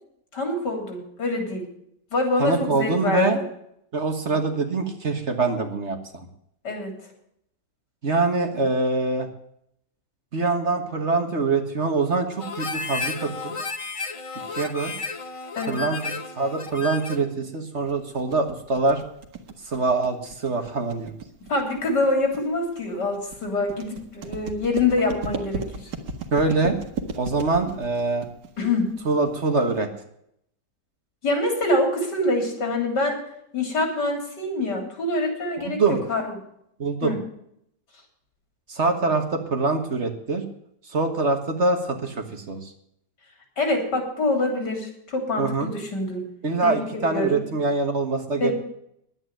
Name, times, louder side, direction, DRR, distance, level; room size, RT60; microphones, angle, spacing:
voice 1, 0.3-1.7 2.1-3.4 6.6-6.9 15.6-15.9 21.4-25.9 28.6-29.0 31.2-33.2 33.5-36.3 37.0-37.2 43.6-46.3 46.6-47.4 48.4-48.5, left 2 dB, 85° left, 3 dB, 3.9 m, -25 dB
voice 2, 2.4-3.4 3.9-6.3 8.0-9.3 10.3-13.6 14.5-14.9 15.7-19.0 19.6-21.1 26.3-26.8 27.2-28.3 29.1-29.9 35.6-36.0 36.8-37.1 38.7-40.4 40.9-42.7 45.4-45.7 46.4-48.5, right 3 dB, 45° right, 5 dB, 1.7 m, -24 dB
Harmonica, 12.4-17.3, left 4 dB, 30° left, 0.6 m, -33 dB
sound 1, 17.9-29.9, right 4 dB, 85° right, 2.0 m, -36 dB
11.0 x 9.1 x 9.0 m, 0.73 s
omnidirectional pair, 1.8 m